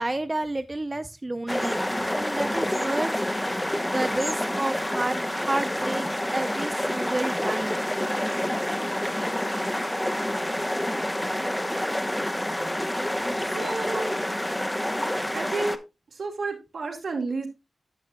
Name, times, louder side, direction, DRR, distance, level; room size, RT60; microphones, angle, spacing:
voice 1, 0.0-1.8 2.1-3.3 3.8-7.9, right 2 dB, 25° right, 0.5 m, -30 dB
sound 1, 1.5-15.8, left 1 dB, 10° left, 0.7 m, -28 dB
voice 2, 13.4-14.1 15.3-15.8 16.1-17.5, right 3 dB, 80° right, 1.9 m, -30 dB
10.0 x 7.2 x 2.6 m
wide cardioid pair, 70°, 0 cm